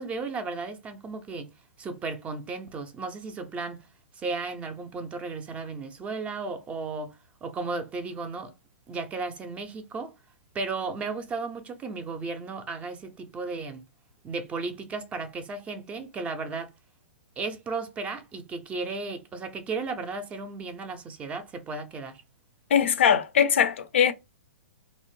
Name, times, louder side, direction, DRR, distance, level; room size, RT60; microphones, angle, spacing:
voice 1, 0.0-1.5 1.8-3.9 4.2-8.5 8.9-10.1 10.5-13.8 14.2-16.7 17.4-22.2, right 4 dB, 20° right, 0.4 m, -34 dB
voice 2, 22.7-24.1, left 8 dB, 65° left, 0.4 m, -21 dB
2.6 x 2.0 x 3.0 m
hypercardioid pair, 120°, 7 cm